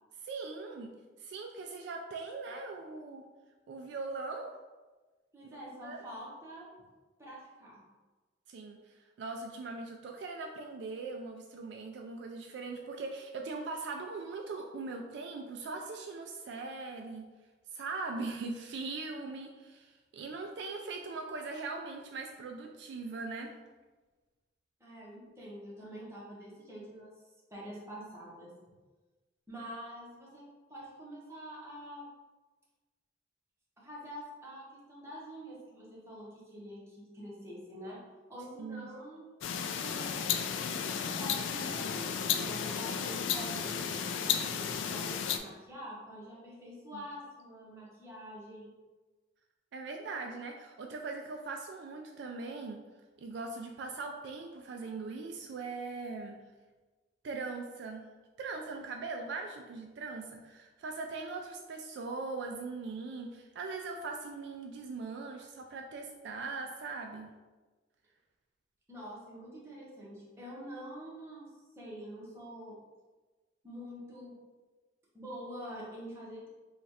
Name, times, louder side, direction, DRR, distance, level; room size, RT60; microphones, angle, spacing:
voice 1, 0.2-0.9 1.2-3.2 3.7-4.5 5.4-6.0 8.5-17.3 17.7-23.5 38.6-38.9 46.9-47.1 49.7-52.8 53.2-56.4 57.2-58.0 58.4-67.3, right 3 dB, 65° right, 3 dB, 0.3 m, -40 dB
voice 2, 5.3-6.7 7.2-7.8 24.8-27.1 27.5-28.5 29.5-30.4 30.7-32.0 33.8-38.0 38.3-39.2 39.8-40.3 40.9-43.7 44.1-48.7 68.9-71.5 71.8-72.8 73.6-74.4 75.1-76.5, equal, 15° right, -6 dB, 1.0 m, -46 dB
sound 1, 39.4-45.4, left 7 dB, 85° left, 0.3 m, -33 dB
3.1 x 2.4 x 4.1 m, 1.2 s
head